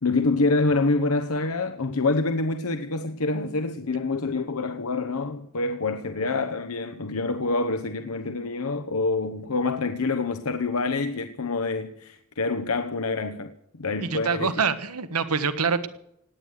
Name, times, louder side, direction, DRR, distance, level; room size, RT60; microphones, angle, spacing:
voice 1, 0.0-14.6, left 3 dB, 75° left, 1.0 m, -26 dB
voice 2, 14.0-15.9, right 5 dB, 85° right, 1.5 m, -25 dB
18.0 x 9.5 x 8.1 m
head